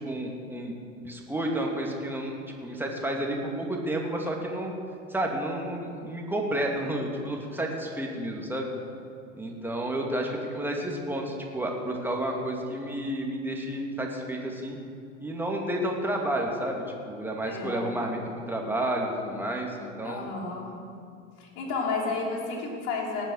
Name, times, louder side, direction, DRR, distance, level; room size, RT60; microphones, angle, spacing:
voice 1, 0.0-2.3 2.6-4.7 5.1-8.7 9.4-14.8 15.2-18.2 18.5-20.3, right 1 dB, 5° right, 0 dB, 2.5 m, -31 dB
voice 2, 17.5-17.9 20.0-20.9 21.4-23.2, left 4 dB, 50° left, -1 dB, 3.3 m, -32 dB
18.5 x 9.0 x 6.6 m, 2.4 s
figure-of-eight pair, 85°, 38 cm